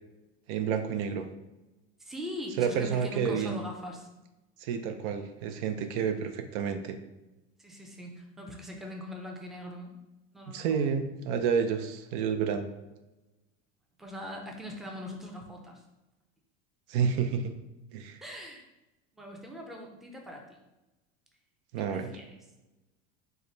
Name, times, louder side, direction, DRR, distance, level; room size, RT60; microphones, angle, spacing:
voice 1, 0.5-1.2 2.6-3.6 4.6-7.0 10.5-12.7 16.9-17.5 17.9-18.2 21.7-22.1, right 7 dB, 70° right, 7 dB, 0.6 m, -29 dB
voice 2, 2.0-4.1 7.6-9.9 10.3-10.8 14.0-15.8 18.2-18.6 19.1-20.6 21.9-22.4, left 1 dB, ahead, 1 dB, 0.5 m, -41 dB
5.0 x 2.2 x 3.8 m, 1.0 s
supercardioid pair, 125°, 31 cm